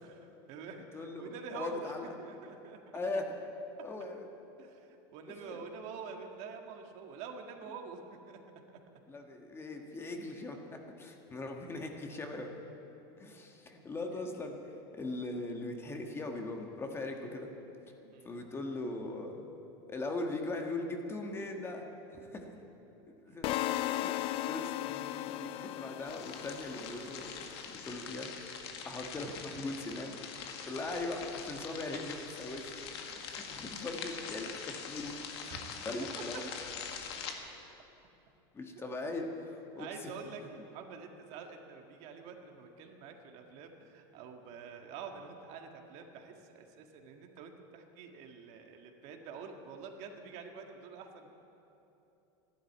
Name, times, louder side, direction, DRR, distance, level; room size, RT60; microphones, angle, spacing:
voice 1, 0.0-3.0 4.6-8.0 8.3-8.4 18.0-18.3 23.3-23.5 30.7-30.8 33.1-33.5 35.5-35.6 39.8-51.3, right 5 dB, 55° right, 3 dB, 1.7 m, -47 dB
voice 2, 0.9-2.1 2.9-3.4 3.8-4.3 5.5-5.6 9.1-12.6 13.2-14.5 14.9-17.5 18.2-19.5 19.9-22.5 23.1-24.2 24.5-27.4 27.6-28.3 28.8-30.2 30.6-32.8 33.2-35.1 35.8-36.5 38.5-39.9, left 2 dB, 20° left, 3 dB, 1.5 m, -40 dB
sound 1, 23.4-27.5, left 14 dB, 45° left, 0.4 m, -36 dB
sound 2, 26.1-37.3, left 6 dB, 85° left, 1.8 m, -44 dB
12.5 x 12.0 x 9.4 m, 3.0 s
supercardioid pair, 135°, 13 cm